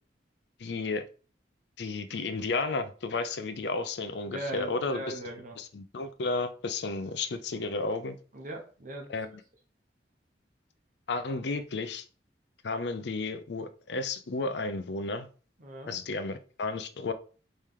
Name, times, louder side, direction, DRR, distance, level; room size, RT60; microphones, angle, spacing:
voice 1, 0.6-1.1 1.8-5.0 5.6-8.2 9.1-9.4 11.1-12.0 12.6-15.3 15.9-17.1, left 3 dB, 65° left, 0.5 m, -32 dB
voice 2, 4.3-5.6 8.3-9.1 15.6-15.9, right 1 dB, 50° right, 1.1 m, -39 dB
4.3 x 3.3 x 3.6 m
head